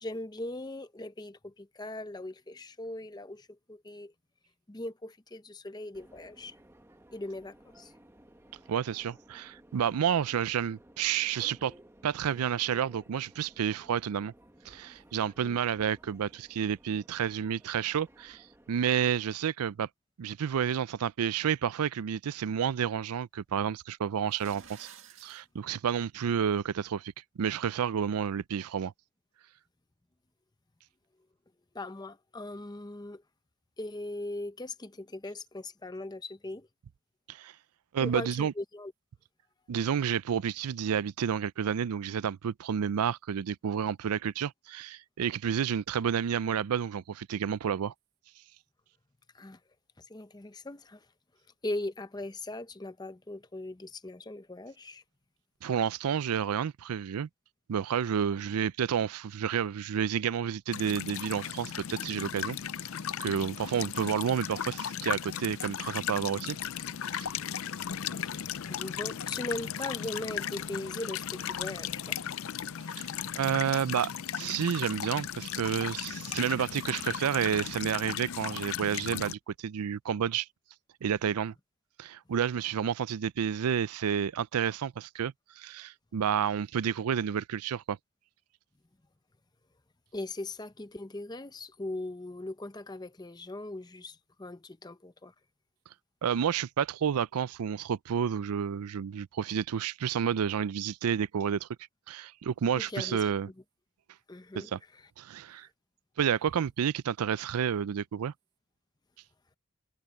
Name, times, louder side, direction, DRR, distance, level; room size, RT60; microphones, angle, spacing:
voice 1, 0.0-4.1 4.7-6.5 7.1-7.9 15.4-15.6 31.7-33.2 33.8-36.7 38.0-38.9 49.3-49.6 50.0-51.0 51.6-55.0 68.2-72.2 90.1-95.3 102.8-103.3 104.3-104.7, left 2 dB, 20° left, 0.6 m, -39 dB
Subway metro underground, 5.9-19.1, right 1 dB, 10° right, 0.9 m, -57 dB
voice 2, 8.7-11.7 12.0-14.3 14.7-19.9 20.2-24.9 25.2-28.9 37.3-37.5 37.9-38.5 39.7-47.9 55.6-57.3 57.7-62.6 63.2-66.6 67.1-67.3 72.9-73.1 73.3-80.5 81.0-81.5 82.0-88.0 96.2-101.7 102.1-103.5 104.5-104.8 105.2-105.7 106.2-108.3, right 8 dB, 85° right, 0.4 m, -30 dB
sound 1, 24.2-25.4, right 8 dB, 60° right, 2.1 m, -51 dB
sound 2, 60.7-79.3, left 9 dB, 65° left, 0.5 m, -36 dB
head